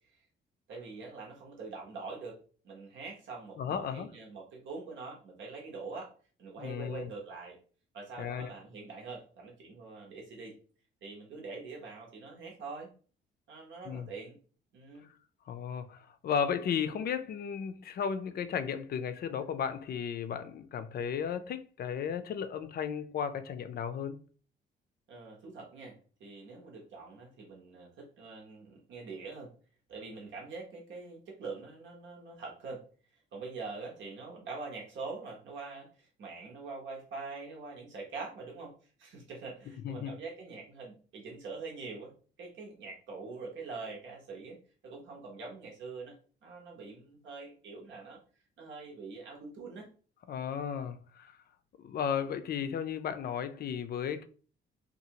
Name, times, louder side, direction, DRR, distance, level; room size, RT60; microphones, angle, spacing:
voice 1, 0.7-2.4 2.6-6.1 6.4-7.6 7.9-10.5 11.0-12.9 13.5-14.4 14.7-15.1 25.1-29.5 29.9-32.8 33.3-38.7 39.0-42.1 42.4-44.6 44.8-46.1 46.4-48.2 48.6-49.9, right 4 dB, 70° right, 1.0 m, -44 dB
voice 2, 3.6-4.1 6.6-7.1 8.2-8.5 13.9-14.1 15.5-24.2 39.8-40.2 50.3-51.3 51.8-54.3, left 7 dB, 50° left, 0.4 m, -34 dB
2.7 x 2.4 x 2.8 m
cardioid pair, 90°, 20 cm